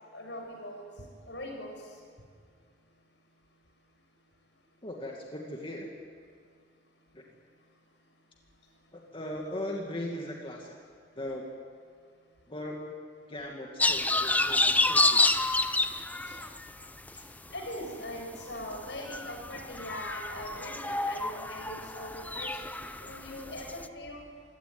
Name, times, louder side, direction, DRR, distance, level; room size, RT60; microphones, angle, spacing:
voice 1, 0.1-0.8 1.3-1.7 16.3-16.4 17.5-22.7 23.0-24.2, left 1 dB, 75° left, 2 dB, 7.1 m, -41 dB
voice 2, 4.8-5.9 7.1-7.2 8.9-10.8 11.2-11.5 12.5-13.0 13.3-15.2, left 1 dB, 30° left, -1 dB, 2.3 m, -38 dB
sound 1, 13.8-17.2 17.6-23.9, left 2 dB, 10° left, 0.8 m, -29 dB
27.0 x 17.0 x 9.6 m, 2.1 s
head